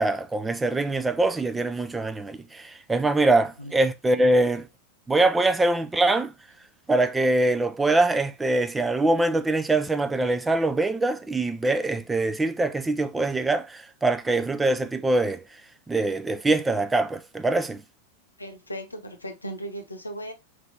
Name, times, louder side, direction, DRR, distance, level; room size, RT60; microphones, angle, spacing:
voice 1, 0.0-4.7 5.1-6.3 6.9-15.4 15.9-17.8, right 2 dB, 10° right, 0.4 m, -23 dB
voice 2, 18.4-20.3, equal, 80° left, 0.9 m, -37 dB
4.6 x 3.7 x 2.7 m
figure-of-eight pair, 90°, 0 cm